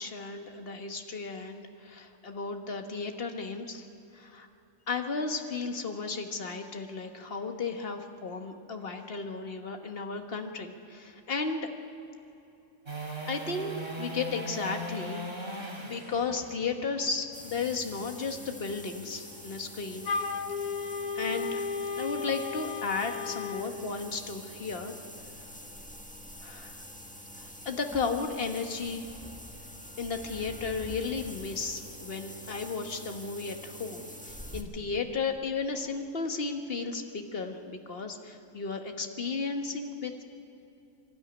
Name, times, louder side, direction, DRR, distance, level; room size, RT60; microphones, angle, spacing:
voice 1, 0.0-3.8 4.1-4.5 4.9-11.7 13.3-15.2 15.8-20.1 20.3-20.4 21.1-21.7 22.0-24.9 26.4-26.8 27.4-29.0 30.0-40.2, left 4 dB, 40° left, 5 dB, 1.6 m, -34 dB
sound 1, 12.9-19.0 25.5-25.6, right 1 dB, 35° right, 3.3 m, -39 dB
sound 2, 17.3-34.6, left 1 dB, 5° left, 1.4 m, -46 dB
Wind instrument woodwind instrument, 20.0-23.7, left 5 dB, 85° left, 1.5 m, -34 dB
25.5 x 12.5 x 9.9 m, 2.9 s
omnidirectional pair, 1.5 m